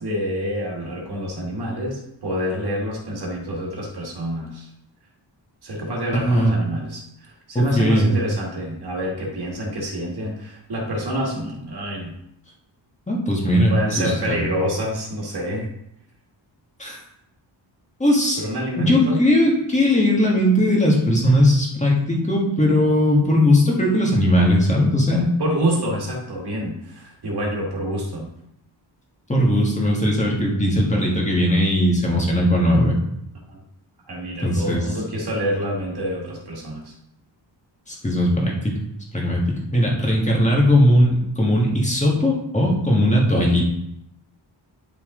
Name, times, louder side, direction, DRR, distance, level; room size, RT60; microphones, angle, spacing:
voice 1, 0.0-4.7 5.6-12.2 13.7-15.7 18.4-19.2 25.4-28.3 33.5-33.6 34.1-36.9, equal, 55° right, -1 dB, 2.0 m, -27 dB
voice 2, 6.1-6.5 7.5-8.1 13.1-14.4 16.8-17.0 18.0-18.4 18.8-25.3 29.3-33.0 34.4-34.9 37.9-38.8 39.1-43.6, left 1 dB, 15° left, -2 dB, 1.7 m, -18 dB
10.0 x 5.7 x 3.8 m, 0.79 s
wide cardioid pair, 175°, 45 cm